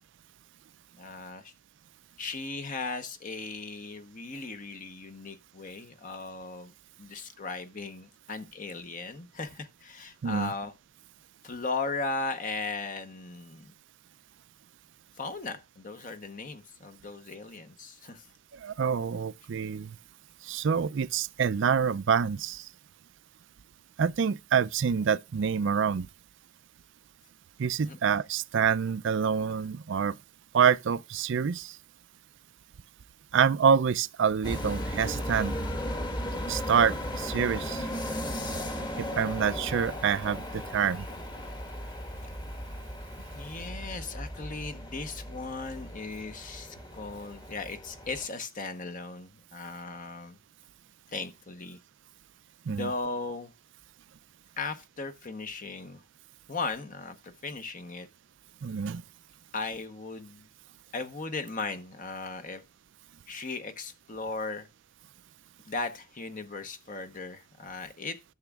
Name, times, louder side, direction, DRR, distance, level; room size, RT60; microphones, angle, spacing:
voice 1, 1.0-1.5 2.2-6.7 7.0-10.7 11.4-13.7 15.2-18.3 27.8-28.0 43.3-50.4 51.1-51.8 52.7-53.5 54.6-56.0 56.5-58.1 59.5-60.5 60.9-62.6 63.3-64.7 65.6-68.2, left 3 dB, 40° left, 0.9 m, -37 dB
voice 2, 18.6-19.9 20.4-22.7 24.0-26.1 27.6-30.2 30.5-31.8 33.3-35.6 36.5-37.9 39.1-41.0 52.7-52.9 58.6-59.0, right 7 dB, 55° right, 0.4 m, -26 dB
sound 1, 34.4-48.3, equal, 20° left, 1.3 m, -36 dB
13.5 x 7.1 x 2.3 m
head